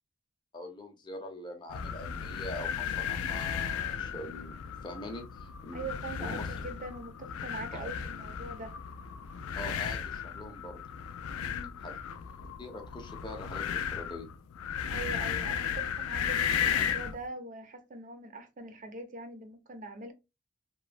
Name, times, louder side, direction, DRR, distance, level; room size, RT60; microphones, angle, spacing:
voice 1, 0.5-4.6 4.8-5.9 6.2-6.5 9.6-10.8 11.8-11.9 12.6-14.3, left 1 dB, 20° left, 0.5 m, -43 dB
sound 1, 1.7-17.2, left 8 dB, 85° left, 0.3 m, -35 dB
voice 2, 5.7-8.7 11.4-11.8 14.9-20.1, right 2 dB, 35° right, 0.4 m, -42 dB
3.0 x 2.1 x 2.4 m
head